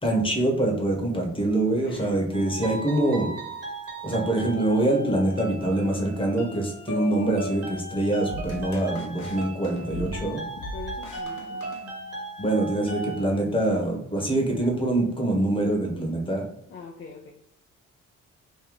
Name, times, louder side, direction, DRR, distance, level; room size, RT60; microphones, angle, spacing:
voice 1, 0.0-3.3 4.0-10.4 12.4-16.5, right 1 dB, 15° left, 1 dB, 1.2 m, -25 dB
voice 2, 1.8-2.2 10.7-11.6 16.7-17.3, left 3 dB, 45° left, -1 dB, 0.6 m, -42 dB
sound 1, 2.3-13.2, right 2 dB, 55° right, 1.4 m, -37 dB
sound 2, 8.3-12.4, left 1 dB, 70° left, 0.8 m, -40 dB
3.1 x 2.6 x 3.8 m, 0.75 s
cardioid pair, 90°, 30 cm